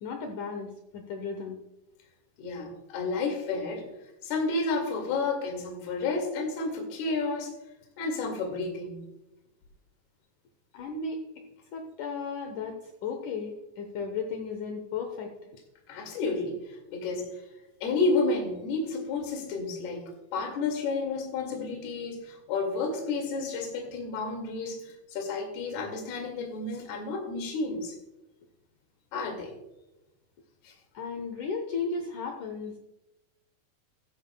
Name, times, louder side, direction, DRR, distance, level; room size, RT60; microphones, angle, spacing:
voice 1, 0.0-1.6 10.7-11.4 11.7-15.3 30.9-32.8, left 5 dB, 85° left, 4 dB, 1.7 m, -35 dB
voice 2, 2.4-3.9 4.2-7.5 8.0-9.1 15.9-16.6 16.9-17.3 17.8-24.8 25.1-27.9 29.1-29.5 30.6-30.7, left 3 dB, 70° left, 1 dB, 3.9 m, -31 dB
15.5 x 14.0 x 2.3 m, 0.96 s
omnidirectional pair, 4.9 m